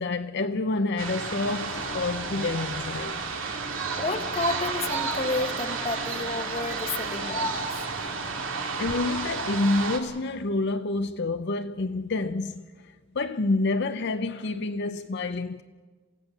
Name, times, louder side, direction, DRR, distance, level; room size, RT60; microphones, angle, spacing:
voice 1, 0.0-3.2 8.8-12.6 13.1-15.6, left 2 dB, 60° left, 0.7 m, -28 dB
sound 1, 1.0-10.0, right 4 dB, 90° right, 2.4 m, -31 dB
voice 2, 4.0-7.6, left 3 dB, 30° left, 1.1 m, -31 dB
28.0 x 16.0 x 6.8 m
head